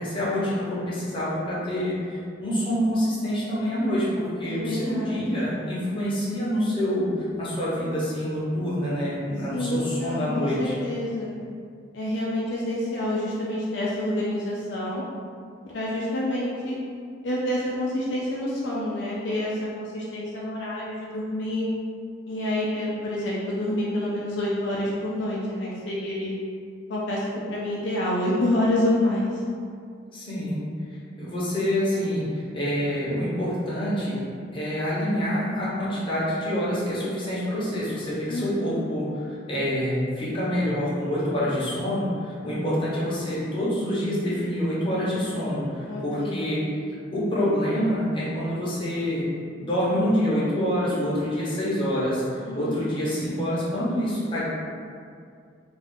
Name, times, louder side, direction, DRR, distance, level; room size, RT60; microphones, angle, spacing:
voice 1, 0.0-10.7 30.1-30.6 31.2-34.2 34.5-46.6 47.1-49.2 49.6-54.4, equal, 25° left, -9 dB, 0.8 m, -26 dB
voice 2, 4.4-5.5 9.5-11.3 11.9-15.0 15.7-16.8 17.2-21.7 22.3-26.3 26.9-27.2 27.5-29.3 38.3-38.8 45.9-46.6 52.5-53.1, left 1 dB, 65° left, -6 dB, 0.4 m, -28 dB
2.6 x 2.4 x 3.5 m, 2.2 s
head